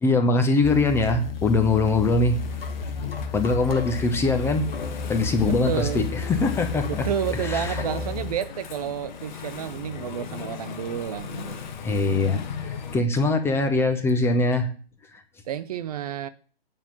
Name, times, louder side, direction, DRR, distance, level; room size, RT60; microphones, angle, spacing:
voice 1, 0.0-2.4 3.3-4.6 5.1-7.1 7.4-7.8 11.8-14.7, left 3 dB, 10° left, 0.7 m, -22 dB
sound 1, 0.6-8.3, left 4 dB, 65° left, 1.2 m, -32 dB
Engine / Mechanisms, 0.9-13.0, left 7 dB, 45° left, 1.3 m, -39 dB
voice 2, 5.5-6.1 6.9-11.8 15.5-16.3, right 9 dB, 40° right, 0.7 m, -30 dB
9.1 x 5.7 x 7.2 m
figure-of-eight pair, 120°, 31 cm